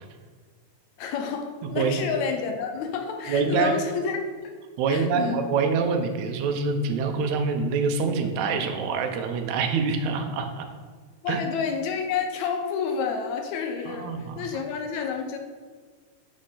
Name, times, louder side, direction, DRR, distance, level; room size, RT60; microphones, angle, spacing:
voice 1, 1.0-4.5 4.9-5.5 11.2-15.4, left 6 dB, 75° left, 4 dB, 1.9 m, -29 dB
voice 2, 3.3-3.7 4.8-10.7 11.3-11.4 13.9-14.5, right 5 dB, 75° right, 4 dB, 2.0 m, -25 dB
6.4 x 6.3 x 3.8 m, 1.5 s
omnidirectional pair, 3.5 m